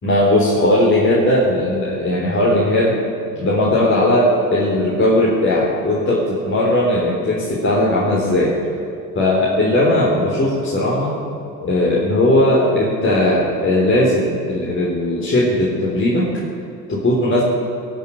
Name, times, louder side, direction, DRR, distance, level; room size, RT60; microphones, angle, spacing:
voice 1, 0.0-3.0 3.4-8.5 9.2-11.1 11.6-16.3 16.9-17.4, left 1 dB, 25° left, -5 dB, 3.7 m, -17 dB
18.5 x 6.8 x 9.7 m, 2.7 s
hypercardioid pair, 80°, 49 cm